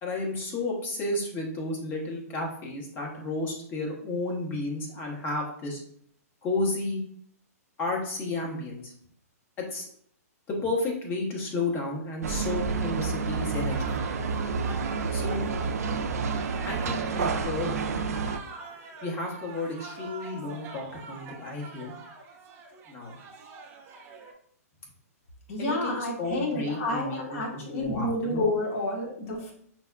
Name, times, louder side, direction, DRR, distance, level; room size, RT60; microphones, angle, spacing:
voice 1, 0.0-5.8 6.4-7.0 7.8-8.9 9.7-9.9 10.5-13.9 15.1-15.4 16.7-18.2 19.0-21.9 22.9-23.2 25.6-28.4, left 2 dB, 25° left, -1 dB, 1.1 m, -32 dB
sound 1, 12.2-18.4, right 5 dB, 75° right, 0.4 m, -29 dB
sound 2, 13.7-24.3, right 4 dB, 30° right, 0.6 m, -43 dB
voice 2, 25.5-29.5, left 1 dB, 60° left, 0 dB, 1.0 m, -30 dB
5.8 x 2.1 x 2.4 m, 0.63 s
hypercardioid pair, 125°, 9 cm